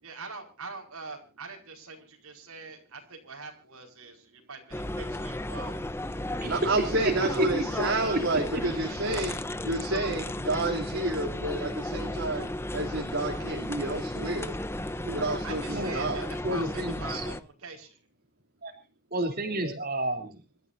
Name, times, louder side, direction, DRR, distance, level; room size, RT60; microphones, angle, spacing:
voice 1, 0.0-5.8 7.3-7.8 15.4-17.3 17.6-18.0, right 4 dB, 85° right, 3 dB, 4.7 m, -43 dB
sound 1, 4.7-17.4, left 1 dB, 10° left, 0.8 m, -34 dB
voice 2, 6.4-9.3 9.6-12.5 12.7-14.6 15.1-16.3, right 2 dB, 65° right, 1 dB, 3.1 m, -30 dB
voice 3, 16.4-17.2 18.6-18.7 19.1-20.4, right 1 dB, 45° right, 3 dB, 3.3 m, -32 dB
26.5 x 13.5 x 2.7 m, 0.33 s
head